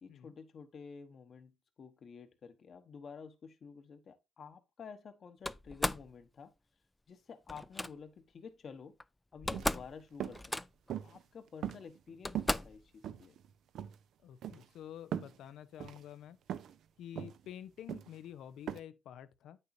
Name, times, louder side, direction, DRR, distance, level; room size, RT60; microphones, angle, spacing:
voice 1, 0.0-6.5 7.1-9.0 9.3-10.7 11.0-13.4, left 6 dB, 50° left, 1.0 m, -51 dB
Slam, 5.4-6.1 7.5-7.9 9.0-9.1 9.3-9.9 10.2-10.9 11.7-11.8 12.2-12.8, left 1 dB, 10° left, 0.3 m, -36 dB
sound 1, 9.5-9.8 10.2-10.4 10.9-11.2 11.6-12.1 12.4-12.6 13.0-13.5 13.8-14.0 14.4-14.7 15.1-15.4 15.8-16.0 16.5-16.7 17.2-17.4 17.9-18.2 18.7-18.8, right 10 dB, 75° right, 0.6 m, -39 dB
voice 2, 14.2-16.4 17.0-19.6, left 10 dB, 80° left, 0.6 m, -49 dB
8.3 x 6.7 x 2.6 m
cardioid pair, 90°, 0 cm